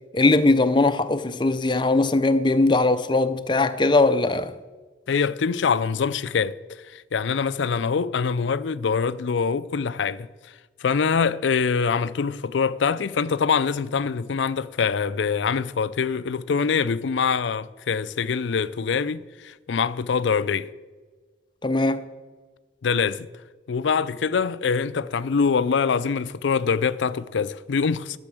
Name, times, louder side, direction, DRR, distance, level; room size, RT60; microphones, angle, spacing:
voice 1, 0.1-4.5 21.6-22.1, left 2 dB, 25° left, 0.5 m, -20 dB
voice 2, 5.1-10.3 10.8-20.7 22.8-23.3 23.7-28.2, left 5 dB, 90° left, 0.5 m, -24 dB
12.0 x 6.9 x 7.7 m
head